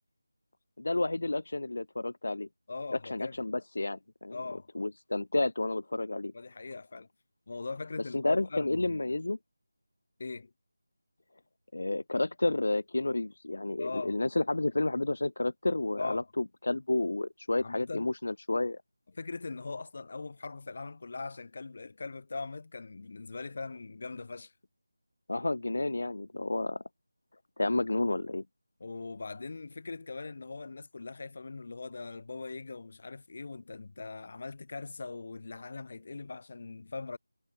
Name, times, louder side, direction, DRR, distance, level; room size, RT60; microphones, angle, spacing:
voice 1, 0.8-2.5 3.0-4.4 4.7-6.3 8.1-9.4 11.7-18.8 25.3-26.8 27.6-28.4, left 2 dB, 65° left, 0.7 m, -31 dB
voice 2, 2.7-3.4 4.3-4.7 6.3-7.1 7.5-9.0 10.2-10.5 13.8-14.2 16.0-16.2 17.6-18.1 19.1-24.5 28.8-37.2, left 3 dB, 45° left, 2.0 m, -41 dB
figure-of-eight pair, 170°, 0 cm